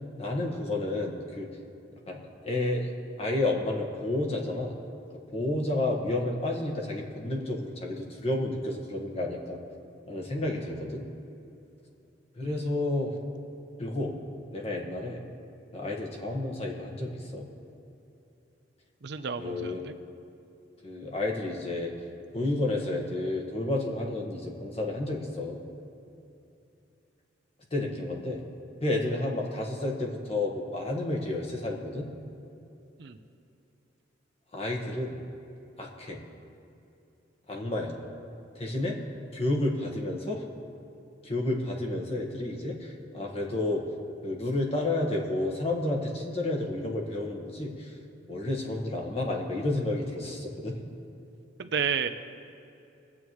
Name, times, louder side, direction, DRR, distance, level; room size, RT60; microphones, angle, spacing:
voice 1, 0.2-1.5 2.1-2.9 3.2-4.7 5.3-9.6 10.1-11.0 12.4-13.1 13.8-14.1 14.5-15.2 15.7-17.5 19.4-19.8 20.8-21.9 22.3-25.6 27.7-28.4 28.8-32.1 34.5-35.2 35.8-36.2 37.5-38.0 38.5-39.0 39.3-40.4 41.2-43.8 44.2-47.9 48.3-50.8, left 2 dB, 35° left, -1 dB, 1.4 m, -31 dB
voice 2, 12.4-12.7 19.0-19.9 33.0-33.2 51.6-52.1, right 6 dB, 65° right, 9 dB, 0.6 m, -32 dB
22.0 x 8.5 x 3.1 m, 2.7 s
head